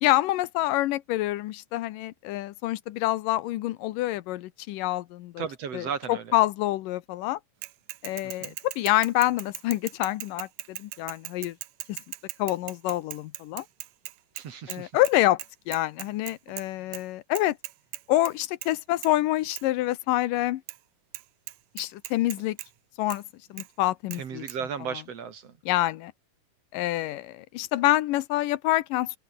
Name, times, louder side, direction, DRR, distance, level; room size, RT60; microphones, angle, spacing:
voice 1, 0.0-5.5 5.7-7.4 8.0-11.6 11.9-12.0 12.4-13.7 14.7-15.4 15.7-17.6 18.1-20.6 21.8-22.6 23.0-23.2 23.5-24.5 24.9-25.0 25.7-26.1 26.7-29.2, left 15 dB, 80° left, 2.5 m, -27 dB
voice 2, 5.4-6.3 8.2-8.6 14.3-14.9 24.2-25.5, right 7 dB, 50° right, 2.8 m, -35 dB
Bicycle / Mechanisms, 7.6-14.8 15.1-15.2 15.4-16.7 16.9-17.0 17.4-18.3 18.6-18.8 19.0-19.1 19.5-19.6 20.7-20.8 21.1-21.2 21.5-22.7 23.1-23.2 23.6-23.7 24.1-24.2 24.5-24.6, right 16 dB, 80° right, 2.4 m, -39 dB
omnidirectional pair, 3.8 m